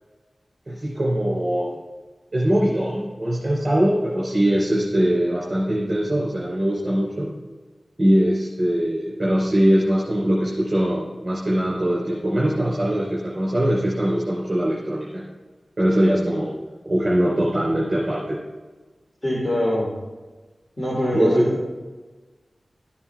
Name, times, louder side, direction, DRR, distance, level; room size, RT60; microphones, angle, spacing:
voice 1, 0.7-1.8 2.3-7.3 8.0-15.2 15.8-16.5 16.9-18.4 21.1-21.4, right 1 dB, 35° right, -6 dB, 3.5 m, -21 dB
voice 2, 19.2-19.9 20.8-21.6, left 1 dB, 15° left, -7 dB, 3.1 m, -23 dB
14.5 x 7.1 x 3.5 m, 1.3 s
wide cardioid pair, 85°, 0 cm